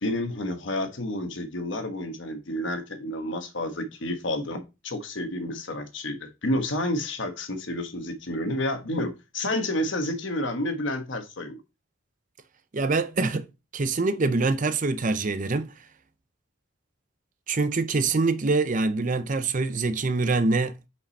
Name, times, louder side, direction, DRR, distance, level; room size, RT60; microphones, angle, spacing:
voice 1, 0.0-11.6, left 1 dB, 65° left, 1.2 m, -30 dB
voice 2, 12.7-13.5 13.7-15.7 17.5-20.9, right 3 dB, 40° right, 0.6 m, -25 dB
5.6 x 5.1 x 4.1 m
head